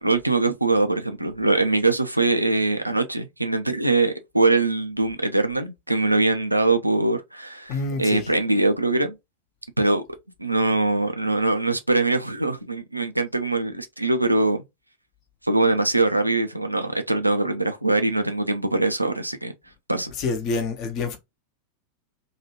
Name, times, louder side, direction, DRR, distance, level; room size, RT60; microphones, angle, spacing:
voice 1, 0.0-9.2 9.8-10.0 10.4-14.6 15.4-19.5 19.9-20.1, right 2 dB, 85° right, 0.4 m, -22 dB
voice 2, 7.7-8.3 20.2-21.2, left 3 dB, 40° left, 0.8 m, -27 dB
2.8 x 2.4 x 2.9 m
figure-of-eight pair, 90°, 0 cm